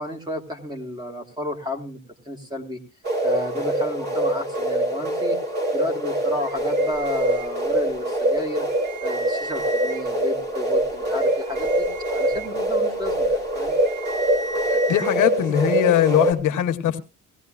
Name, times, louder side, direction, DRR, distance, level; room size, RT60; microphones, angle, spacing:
voice 1, 0.0-2.8 3.2-5.4 5.7-8.7 9.0-13.8, left 1 dB, 10° right, 1.7 m, -32 dB
sound 1, 3.0-16.3, right 1 dB, 30° right, 3.1 m, -24 dB
sound 2, 6.4-8.0 8.3-8.4 8.7-10.2 10.8-15.1, right 2 dB, 65° right, 2.5 m, -36 dB
voice 2, 14.7-17.0, left 11 dB, 65° left, 1.1 m, -21 dB
18.0 x 16.0 x 2.4 m
cardioid pair, 145°, 33 cm